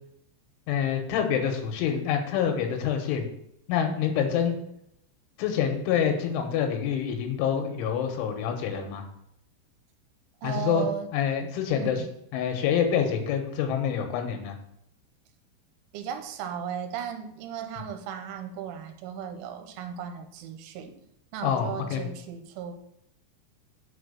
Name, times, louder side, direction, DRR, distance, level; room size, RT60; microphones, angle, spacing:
voice 1, 0.7-3.3 3.7-4.6 5.4-9.0 10.4-10.9 11.1-12.0 12.3-14.6 21.4-22.1, left 8 dB, 80° left, 4 dB, 3.4 m, -26 dB
voice 2, 10.4-11.1 11.7-12.1 15.9-21.0 21.3-22.7, right 8 dB, 85° right, 6 dB, 3.2 m, -36 dB
6.9 x 4.5 x 6.7 m, 0.76 s
omnidirectional pair, 5.6 m